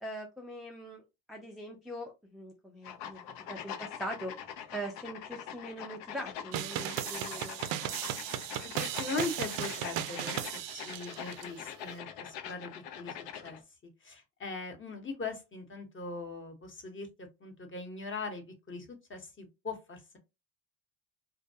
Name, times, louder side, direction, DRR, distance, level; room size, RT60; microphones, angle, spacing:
voice 1, 0.0-3.2 3.5-4.3 4.7-7.6, right 1 dB, ahead, 0 dB, 0.3 m, -42 dB
sound 1, 2.8-13.6, left 9 dB, 65° left, 0.6 m, -43 dB
sound 2, 6.5-11.5, right 11 dB, 70° right, 0.5 m, -36 dB
voice 2, 9.0-12.7 13.0-13.2 13.4-13.6 14.0-20.2, left 3 dB, 25° left, 4 dB, 0.9 m, -40 dB
2.2 x 2.1 x 2.7 m, 0.24 s
hypercardioid pair, 65°, 46 cm